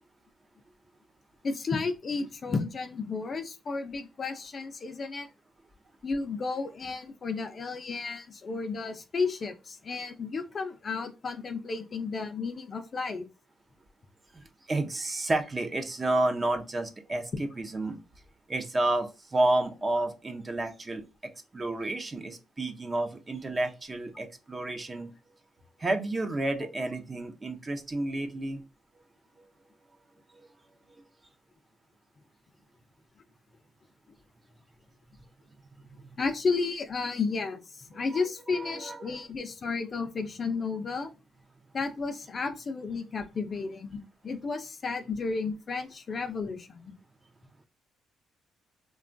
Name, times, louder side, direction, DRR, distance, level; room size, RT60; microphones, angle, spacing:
voice 1, 1.4-5.3 6.0-13.3 36.2-41.1 41.7-46.9, left 4 dB, 40° left, 7 dB, 0.4 m, -33 dB
voice 2, 14.3-18.0 18.5-25.1 25.8-28.6 29.4-29.5 30.3-30.5 37.9-38.2 38.5-39.3, right 2 dB, 25° right, 6 dB, 0.5 m, -31 dB
2.9 x 2.3 x 2.5 m, 0.29 s
cardioid pair, 90°, 0 cm